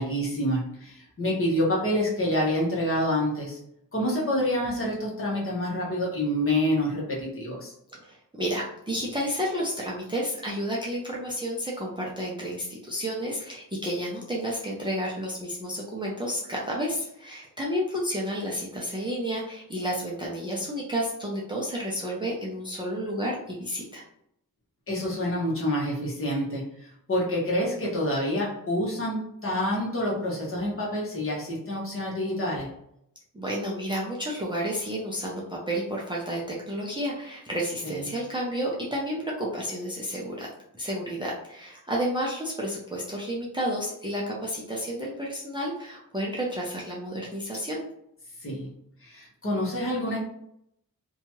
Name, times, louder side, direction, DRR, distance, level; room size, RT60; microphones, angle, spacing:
voice 1, 0.0-3.6 3.9-7.7 24.9-26.6 27.1-32.7 37.8-38.0 48.4-48.7 49.0-50.2, left 1 dB, 40° left, -4 dB, 1.0 m, -27 dB
voice 2, 7.9-24.0 33.3-40.5 40.8-47.8, equal, 15° right, -3 dB, 0.5 m, -31 dB
2.7 x 2.3 x 2.9 m, 0.74 s
wide cardioid pair, 140°, 34 cm